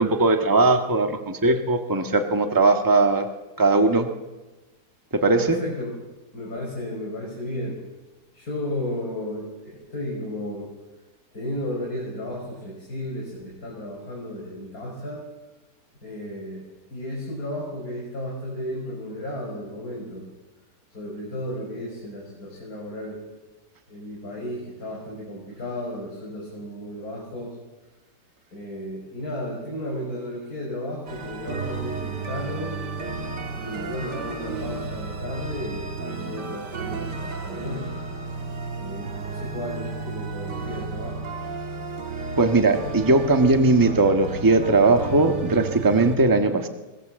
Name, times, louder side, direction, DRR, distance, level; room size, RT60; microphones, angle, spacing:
voice 1, 0.0-3.3 3.6-4.1 5.1-5.6 42.4-46.7, right 3 dB, 15° right, 5 dB, 1.4 m, -19 dB
voice 2, 5.4-5.9 6.3-7.8 8.3-10.7 11.3-15.2 16.0-16.7 16.9-20.3 20.9-23.2 23.9-27.5 28.5-32.7 33.6-38.0 38.8-41.5, left 1 dB, 60° left, -3 dB, 6.4 m, -33 dB
sound 1, 31.1-46.2, right 4 dB, 80° right, 2.6 m, -33 dB
25.5 x 19.5 x 7.7 m, 1.2 s
omnidirectional pair, 1.8 m